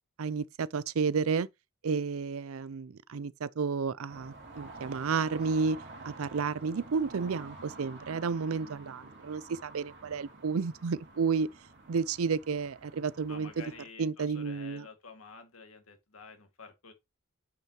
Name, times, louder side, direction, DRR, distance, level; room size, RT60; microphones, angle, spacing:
voice 1, 0.2-1.5 1.8-11.5 11.9-13.6 14.0-14.9, right 5 dB, 70° right, 0.5 m, -31 dB
sound 1, 4.1-13.8, right 2 dB, 55° right, 2.7 m, -49 dB
voice 2, 13.3-16.9, left 4 dB, 70° left, 2.0 m, -49 dB
8.8 x 5.7 x 2.9 m
head